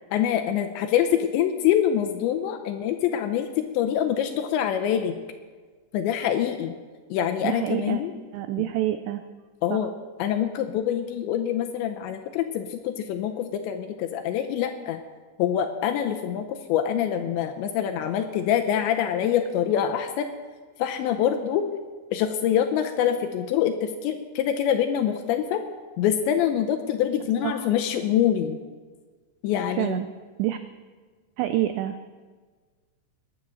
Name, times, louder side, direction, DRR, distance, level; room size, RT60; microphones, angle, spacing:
voice 1, 0.1-5.2 5.9-6.7 7.1-8.1 9.6-9.9 10.2-15.0 15.4-20.3 20.8-21.6 22.1-25.6 26.0-28.6 29.4-30.0, left 9 dB, 80° left, 6 dB, 2.8 m, -25 dB
voice 2, 7.4-8.0 8.3-9.2 9.7-9.8 27.4-27.7 29.8-30.1 30.4-30.6 31.4-32.0, right 13 dB, 90° right, 9 dB, 2.4 m, -27 dB
19.5 x 10.5 x 6.3 m, 1.5 s
omnidirectional pair, 5.8 m